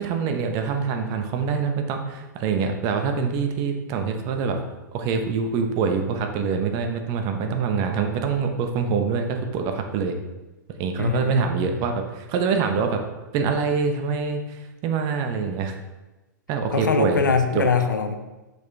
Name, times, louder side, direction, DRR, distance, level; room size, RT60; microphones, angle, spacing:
voice 1, 0.0-4.6 4.9-10.2 10.8-13.0 13.3-15.8 16.5-17.2 17.5-17.7, right 5 dB, 40° right, 5 dB, 0.9 m, -25 dB
voice 2, 11.0-11.5 16.7-18.1, left 5 dB, 80° left, 7 dB, 0.7 m, -22 dB
6.4 x 5.3 x 3.5 m, 1.1 s
figure-of-eight pair, 110°, 10 cm